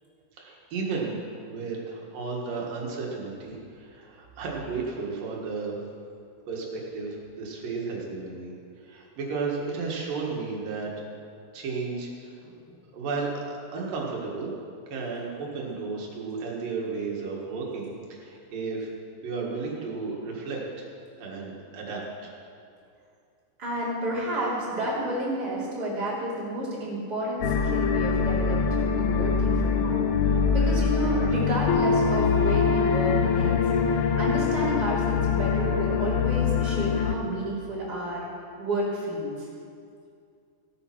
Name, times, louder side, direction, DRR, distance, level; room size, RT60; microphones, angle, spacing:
voice 1, 0.4-1.2 1.4-5.7 6.5-8.5 8.8-10.9 11.5-12.3 12.9-14.5 14.9-18.9 19.2-20.9 21.2-22.4, right 4 dB, 85° right, -2 dB, 3.3 m, -33 dB
voice 2, 12.4-12.8 23.6-30.1 30.5-33.6 34.0-38.2 38.6-39.3, right 1 dB, 30° right, -7 dB, 3.5 m, -30 dB
sound 1, 27.4-37.2, left 6 dB, 75° left, 2.0 m, -24 dB
16.0 x 8.5 x 6.0 m, 2.4 s
omnidirectional pair, 3.9 m